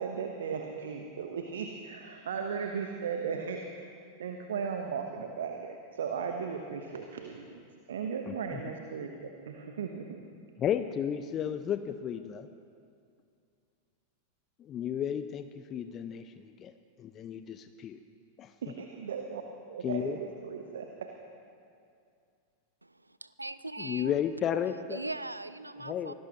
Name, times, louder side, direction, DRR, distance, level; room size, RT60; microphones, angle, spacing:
voice 1, 0.0-3.6 4.2-7.6 7.9-10.2 18.6-19.4 19.7-21.1, right 6 dB, 60° right, 4 dB, 1.1 m, -36 dB
voice 2, 8.3-8.6 10.6-12.5 14.6-16.7 17.0-18.0 18.4-18.5 19.8-20.2 23.8-25.0 25.8-26.1, left 9 dB, 30° left, 10 dB, 0.6 m, -33 dB
voice 3, 22.8-24.1 24.9-26.1, right 2 dB, 85° right, 15 dB, 0.5 m, -40 dB
25.0 x 18.5 x 3.0 m, 2.4 s
figure-of-eight pair, 90°, 0 cm